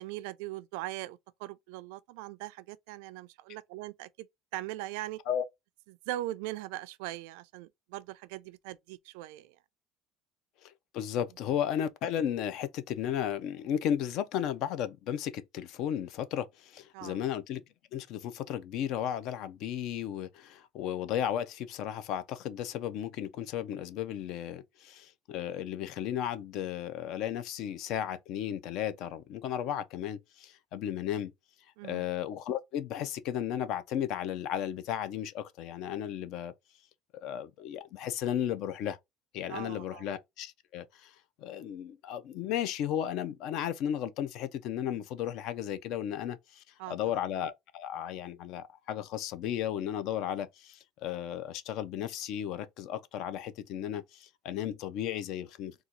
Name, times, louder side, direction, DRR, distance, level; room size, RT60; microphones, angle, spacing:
voice 1, 0.0-4.3 4.5-5.2 5.9-9.6 16.9-17.2 31.8-32.1 39.5-40.1 46.8-46.9, right 16 dB, 80° right, 0.3 m, -40 dB
voice 2, 10.6-17.6 17.9-31.3 31.8-36.5 37.2-39.0 39.3-55.7, left 10 dB, 50° left, 0.5 m, -34 dB
3.8 x 2.3 x 2.8 m
cardioid pair, 175°, 0 cm